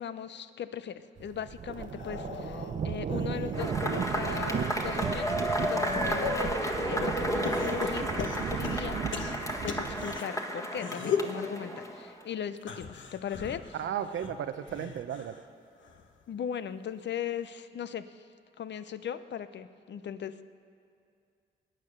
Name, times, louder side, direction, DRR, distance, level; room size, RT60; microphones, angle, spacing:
voice 1, 0.0-5.4 5.7-13.8 16.3-18.3 18.6-20.4, left 8 dB, 65° left, 13 dB, 0.7 m, -38 dB
sound 1, 1.2-10.2, right 7 dB, 40° right, 0.4 m, -35 dB
sound 2, 1.8-4.1 4.6-6.6 7.4-10.2 10.7-11.4 12.6-15.4 15.8-16.2 17.4-17.5, left 6 dB, 80° left, 1.2 m, -38 dB
Cheering / Applause / Crowd, 3.5-12.2, equal, 15° left, 1.6 m, -33 dB
voice 2, 13.8-15.3, right 9 dB, 85° right, 10 dB, 0.8 m, -34 dB
21.0 x 9.4 x 6.6 m, 2.4 s
cardioid pair, 80°, 19 cm